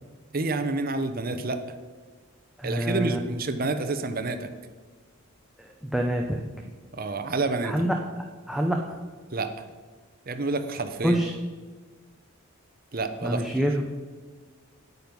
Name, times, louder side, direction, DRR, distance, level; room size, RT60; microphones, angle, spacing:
voice 1, 0.3-1.6 2.6-4.5 6.9-7.7 9.3-9.5 10.3-11.2 12.9-13.5, right 3 dB, 40° right, 8 dB, 0.8 m, -28 dB
voice 2, 2.6-3.2 5.6-6.4 7.6-8.0 8.5-9.0 11.0-11.3 13.2-13.9, equal, ahead, 1 dB, 0.6 m, -26 dB
9.6 x 9.3 x 5.3 m, 1.5 s
head